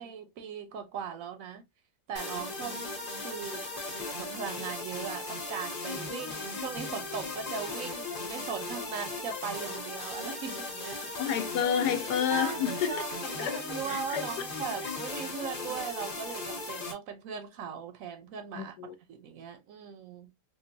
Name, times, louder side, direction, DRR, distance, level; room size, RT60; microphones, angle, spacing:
voice 1, 0.0-1.6 2.1-2.8 3.2-3.7 4.2-11.2 12.3-20.3, right 7 dB, 65° right, 0.8 m, -39 dB
sound 1, 2.2-16.9, left 2 dB, 35° left, 1.0 m, -37 dB
voice 2, 11.2-13.0 13.4-14.2 18.5-19.0, left 8 dB, 75° left, 1.1 m, -30 dB
3.7 x 2.4 x 2.5 m
omnidirectional pair, 1.8 m